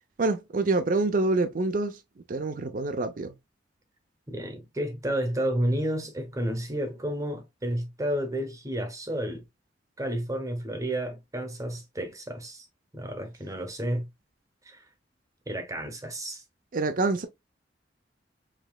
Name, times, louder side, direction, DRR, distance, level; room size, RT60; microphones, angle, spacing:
voice 1, 0.2-2.0 2.3-3.3 16.7-17.3, right 3 dB, 50° right, 0.5 m, -26 dB
voice 2, 4.3-9.4 10.0-12.7 12.9-14.1 14.6-14.8 15.5-16.4, right 1 dB, 20° right, 0.8 m, -31 dB
4.9 x 3.2 x 2.2 m
head